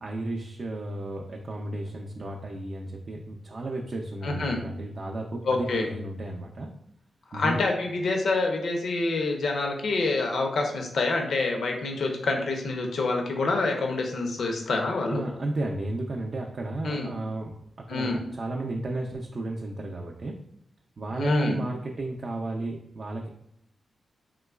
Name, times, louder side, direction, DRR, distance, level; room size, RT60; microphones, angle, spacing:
voice 1, 0.0-6.7 7.3-7.6 15.1-17.6 17.9-20.4 21.0-23.3, right 2 dB, 55° right, 0 dB, 0.4 m, -33 dB
voice 2, 4.2-4.6 5.4-5.9 7.3-15.2 16.8-17.1 17.9-18.2 21.2-21.7, left 3 dB, 80° left, 2 dB, 0.5 m, -27 dB
3.7 x 3.0 x 2.3 m, 0.74 s
cardioid pair, 75°, 0 cm